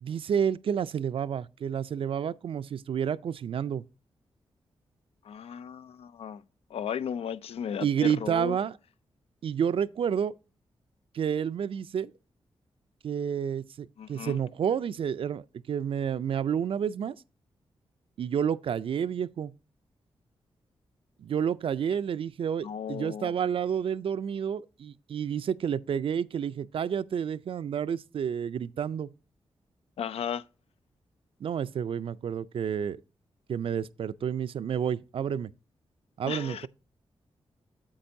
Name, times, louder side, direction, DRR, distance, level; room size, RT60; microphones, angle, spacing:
voice 1, 0.0-3.8 7.8-8.8 9.4-10.3 11.1-12.1 13.0-17.2 18.2-19.5 21.2-29.1 31.4-33.0 33.5-35.5 36.2-36.7, right 8 dB, 65° right, 0.4 m, -30 dB
voice 2, 5.2-6.4 6.7-8.6 14.0-14.4 22.6-23.3 30.0-30.5 36.3-36.7, left 8 dB, 80° left, 0.4 m, -35 dB
8.6 x 7.5 x 2.6 m
cardioid pair, 85°, 10 cm